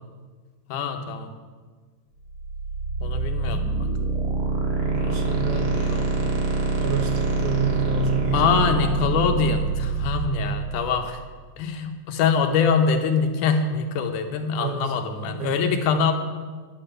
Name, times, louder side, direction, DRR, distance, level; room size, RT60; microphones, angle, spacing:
voice 1, 0.7-1.3 3.0-3.9 5.0-6.4 8.3-11.2 11.6-16.1, left 5 dB, 75° left, 5 dB, 2.2 m, -24 dB
sound 1, 2.3-11.2, right 3 dB, 50° right, 2.0 m, -25 dB
voice 2, 4.7-6.5 6.8-8.8 10.1-10.2 14.6-14.8 15.4-15.7, right 6 dB, 65° right, 4 dB, 2.6 m, -29 dB
10.0 x 9.9 x 6.6 m, 1.5 s
omnidirectional pair, 4.0 m